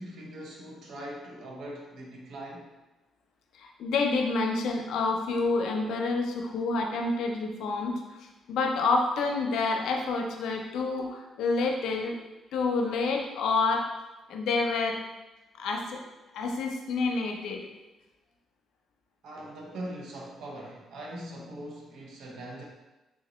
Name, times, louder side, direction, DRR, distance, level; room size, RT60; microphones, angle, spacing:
voice 1, 0.0-2.7 19.2-22.7, right 1 dB, 75° right, -1 dB, 0.8 m, -41 dB
voice 2, 3.5-12.2 12.5-13.9 14.3-15.0 15.6-16.0 16.3-17.6, left 3 dB, 80° left, 2 dB, 0.5 m, -28 dB
3.6 x 2.8 x 3.0 m, 1.1 s
cardioid pair, 90°, 0 cm